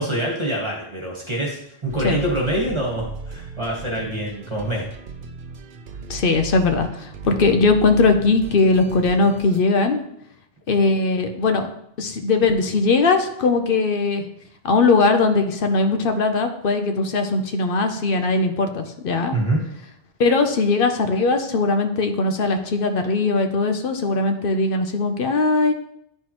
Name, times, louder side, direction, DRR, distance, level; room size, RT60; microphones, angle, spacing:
voice 1, 0.0-4.9 19.3-19.6, right 1 dB, 25° right, -3 dB, 1.5 m, -25 dB
sound 1, 1.9-9.6, right 5 dB, 60° right, 0.8 m, -37 dB
voice 2, 6.1-10.0 10.7-11.7 12.0-14.2 14.6-19.4 20.2-25.7, left 3 dB, 60° left, 6 dB, 0.9 m, -20 dB
10.5 x 4.5 x 3.0 m, 0.77 s
omnidirectional pair, 1.1 m